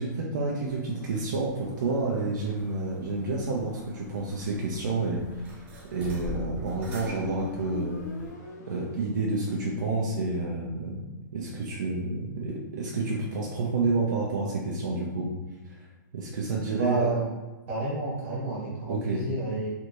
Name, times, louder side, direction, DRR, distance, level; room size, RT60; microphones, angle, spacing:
voice 1, 0.0-8.1 8.7-11.0 11.3-15.4 15.6-15.8 16.1-17.1 18.9-19.2, right 3 dB, 70° right, -3 dB, 0.6 m, -29 dB
sound 1, 0.7-8.3, equal, 15° right, 0.4 m, -45 dB
Motorcycle, 6.1-9.7, left 3 dB, 60° left, 0.8 m, -42 dB
voice 2, 16.7-17.3 17.7-19.7, right 2 dB, 40° right, -5 dB, 1.4 m, -29 dB
3.4 x 2.6 x 3.0 m, 1.2 s
hypercardioid pair, 170°, 11 cm